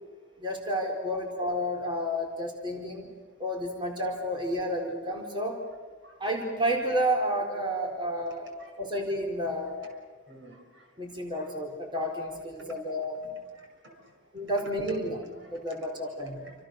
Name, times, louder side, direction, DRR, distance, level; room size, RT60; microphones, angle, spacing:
voice 1, 0.4-3.1 3.4-5.6 6.2-8.5 8.8-9.8 11.0-13.3 14.3-15.2 15.5-16.5, equal, 25° right, 1 dB, 4.3 m, -31 dB
voice 2, 6.0-6.3 8.1-8.3 8.6-8.7 10.3-10.9 11.4-11.5 12.6-12.7 13.5-14.0 15.2-15.8 16.4-16.5, right 1 dB, 70° right, 3 dB, 6.3 m, -53 dB
29.5 x 27.0 x 6.6 m, 1.4 s
head